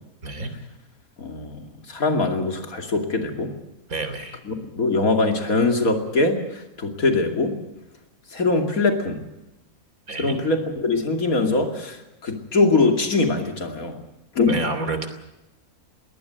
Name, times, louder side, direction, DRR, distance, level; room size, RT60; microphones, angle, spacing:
voice 1, 1.2-3.5 4.5-7.6 8.3-9.2 10.2-14.0 14.3-14.6, left 3 dB, 65° left, 4 dB, 3.0 m, -22 dB
voice 2, 3.9-4.4 10.1-10.4 14.5-15.1, right 2 dB, 65° right, 9 dB, 3.4 m, -28 dB
21.5 x 18.5 x 8.1 m, 0.95 s
omnidirectional pair, 1.6 m